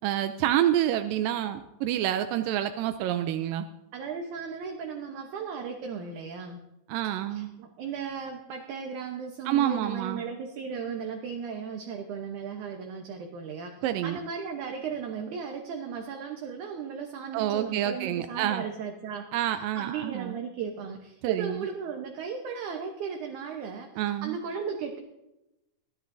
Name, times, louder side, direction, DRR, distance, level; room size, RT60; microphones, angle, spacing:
voice 1, 0.0-3.7 6.9-7.5 9.5-10.2 13.8-14.2 17.3-18.6 19.3-20.4 21.2-21.7 24.0-24.4, right 11 dB, 90° right, 8 dB, 2.3 m, -28 dB
voice 2, 3.9-6.6 7.3-13.7 14.0-19.3 19.8-23.9 24.2-25.0, right 6 dB, 70° right, 3 dB, 2.4 m, -36 dB
21.0 x 13.5 x 2.7 m, 0.93 s
omnidirectional pair, 3.8 m